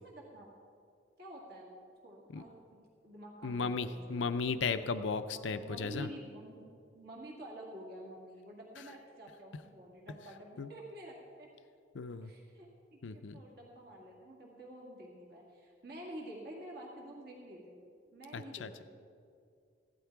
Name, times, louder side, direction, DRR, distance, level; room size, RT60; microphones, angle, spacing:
voice 1, 0.0-0.5 1.2-4.5 5.3-6.6 6.9-11.5 12.2-17.8 18.1-18.8, right 1 dB, 60° right, -2 dB, 2.1 m, -49 dB
voice 2, 3.4-6.1 10.6-10.7 11.9-12.3 13.0-13.4 18.3-18.8, left 4 dB, 90° left, 10 dB, 0.5 m, -35 dB
15.5 x 12.0 x 4.7 m, 2.3 s
head